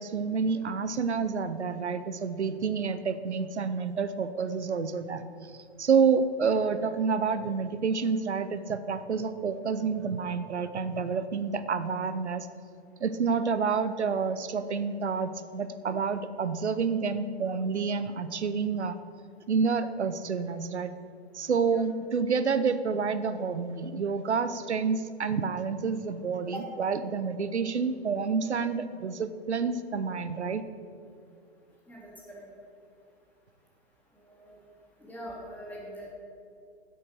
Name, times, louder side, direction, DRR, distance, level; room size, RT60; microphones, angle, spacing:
voice 1, 0.0-5.2 5.8-12.5 13.0-19.0 19.5-20.9 21.3-30.6, right 5 dB, 90° right, 12 dB, 0.8 m, -29 dB
voice 2, 31.9-32.5 34.1-34.5 35.0-36.1, equal, 5° left, -4 dB, 2.8 m, -43 dB
10.5 x 7.9 x 6.5 m, 2.5 s
hypercardioid pair, 125°, 33 cm